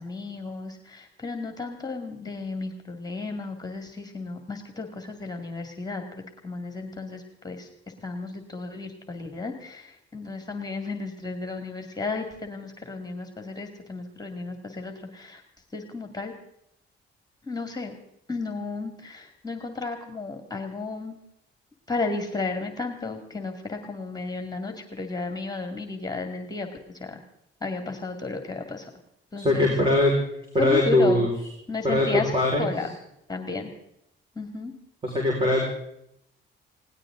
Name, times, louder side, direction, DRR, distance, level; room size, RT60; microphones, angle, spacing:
voice 1, 0.0-7.7 8.0-15.4 15.7-16.3 17.5-17.9 18.3-21.2 21.9-26.7 27.0-27.2 27.6-28.9 29.3-29.7 30.6-31.3 31.7-32.3 32.6-32.9 33.3-33.7 34.4-34.7, left 3 dB, 20° left, 5 dB, 2.3 m, -33 dB
voice 2, 29.4-30.1 30.5-31.3 31.8-32.7 35.0-35.6, left 1 dB, 30° right, -1 dB, 5.0 m, -21 dB
20.0 x 18.0 x 3.8 m, 0.77 s
cardioid pair, 90°, 20 cm